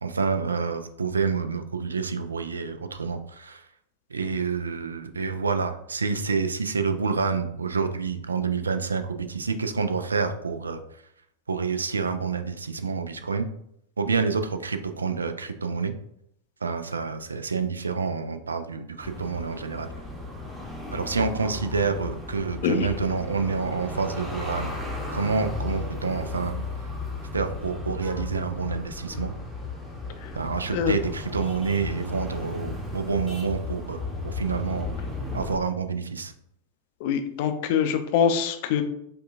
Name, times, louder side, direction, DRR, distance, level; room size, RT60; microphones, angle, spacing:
voice 1, 0.0-3.7 4.1-10.8 11.5-13.5 14.0-15.9 16.6-19.9 20.9-24.8 25.1-26.5 27.3-29.3 30.3-34.9 35.3-36.3, right 5 dB, 75° right, 8 dB, 0.3 m, -28 dB
sound 1, 19.0-35.6, left 3 dB, 5° right, 0.8 m, -35 dB
voice 2, 37.0-38.8, left 7 dB, 50° left, 7 dB, 0.4 m, -24 dB
5.2 x 2.2 x 2.5 m, 0.74 s
figure-of-eight pair, 90°, 0 cm